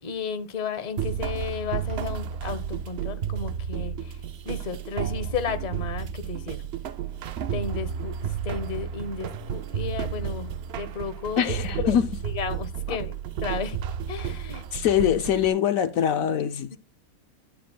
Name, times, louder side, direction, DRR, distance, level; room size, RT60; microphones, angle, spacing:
voice 1, 0.0-6.7 7.5-12.0 12.2-13.2 13.4-13.8 14.1-14.6 16.7-16.8, left 6 dB, 35° left, 0.9 m, -33 dB
sound 1, 1.0-15.5, right 8 dB, 60° right, 0.7 m, -32 dB
voice 2, 11.4-12.1 12.9-13.0 14.7-16.8, left 9 dB, 70° left, 1.1 m, -23 dB
12.0 x 9.4 x 2.3 m
omnidirectional pair, 1.5 m